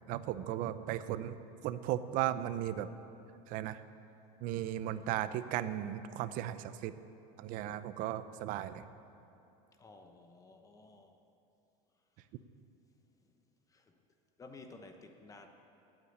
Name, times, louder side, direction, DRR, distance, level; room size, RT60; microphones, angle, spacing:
voice 1, 0.1-1.4 1.6-2.9 3.5-3.8 4.4-6.9 7.4-8.8, right 12 dB, 50° right, 13 dB, 0.7 m, -36 dB
voice 2, 9.8-11.2 13.7-14.0 14.4-15.5, left 3 dB, 20° left, 5 dB, 1.0 m, -54 dB
12.0 x 9.0 x 9.7 m, 2.8 s
supercardioid pair, 140°, 17 cm